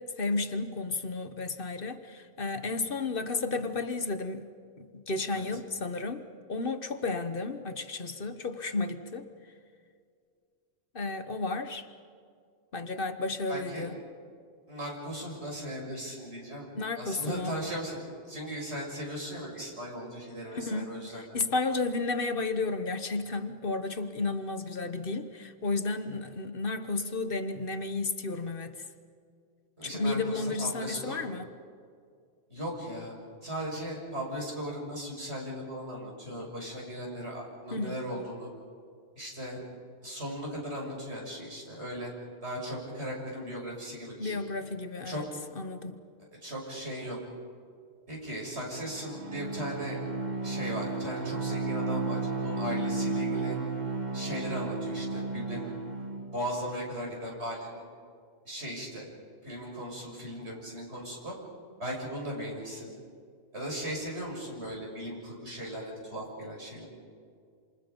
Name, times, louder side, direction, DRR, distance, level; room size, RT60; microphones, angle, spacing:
voice 1, 0.0-4.5 4.8-6.2 6.5-9.3 10.9-11.9 12.7-14.0 16.7-17.5 20.5-28.8 29.8-31.5 37.7-38.0 44.2-45.2 45.6-46.0, left 3 dB, 55° left, 9 dB, 1.3 m, -32 dB
voice 2, 13.5-13.9 14.7-16.7 17.0-21.2 29.8-31.3 32.5-33.1 33.4-38.5 39.2-39.6 40.0-42.1 42.4-44.4 45.0-45.2 46.4-47.2 48.1-50.0 50.4-53.6 54.1-55.7 56.3-57.8 58.4-59.1 59.4-61.3 61.8-62.9 63.5-66.9, equal, 75° right, -2 dB, 6.8 m, -37 dB
Bowed string instrument, 48.7-56.4, right 3 dB, 40° right, 1.8 m, -33 dB
28.0 x 27.5 x 5.4 m, 2.2 s
omnidirectional pair, 1.1 m